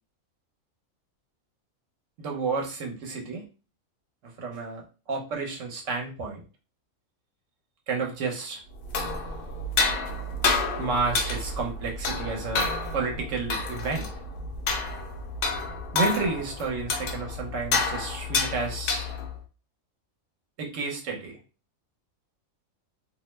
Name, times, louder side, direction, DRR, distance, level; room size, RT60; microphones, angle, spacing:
voice 1, 2.2-3.4 4.4-6.4 7.9-8.6 10.8-14.1 15.9-19.1 20.6-21.4, right 4 dB, 65° right, 0 dB, 1.1 m, -31 dB
sound 1, 8.7-19.4, left 3 dB, 70° left, 0.5 m, -29 dB
2.6 x 2.0 x 3.1 m, 0.33 s
omnidirectional pair, 1.4 m